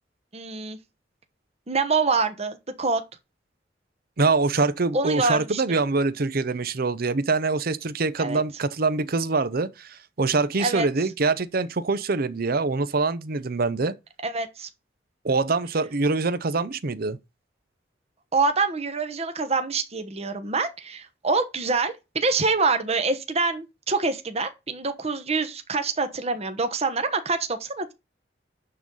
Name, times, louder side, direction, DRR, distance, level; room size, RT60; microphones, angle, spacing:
voice 1, 0.3-0.8 1.7-3.0 4.9-5.9 8.2-8.4 10.6-10.9 14.2-14.7 18.3-27.9, right 4 dB, 35° right, 1.1 m, -26 dB
voice 2, 4.2-13.9 15.2-17.2, right 3 dB, 55° right, 0.7 m, -24 dB
11.0 x 3.9 x 5.5 m
head